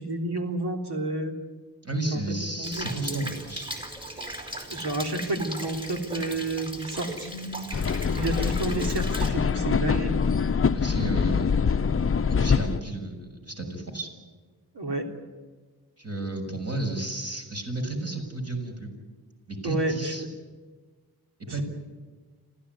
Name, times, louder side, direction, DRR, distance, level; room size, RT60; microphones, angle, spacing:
voice 1, 0.0-1.3 2.1-2.2 2.6-3.3 4.7-7.7 8.1-10.1 14.8-15.0 19.6-20.3, right 2 dB, 80° right, 4 dB, 3.5 m, -30 dB
voice 2, 1.8-3.7 10.7-11.9 12.3-14.1 16.0-18.9 19.5-20.2 21.4-21.6, right 2 dB, 40° right, 3 dB, 6.6 m, -32 dB
Rain, 2.6-9.3, right 1 dB, 10° right, 4.8 m, -37 dB
sound 1, 7.7-12.8, left 6 dB, 35° left, 0.7 m, -24 dB
26.5 x 15.5 x 9.6 m, 1.4 s
wide cardioid pair, 95°, 39 cm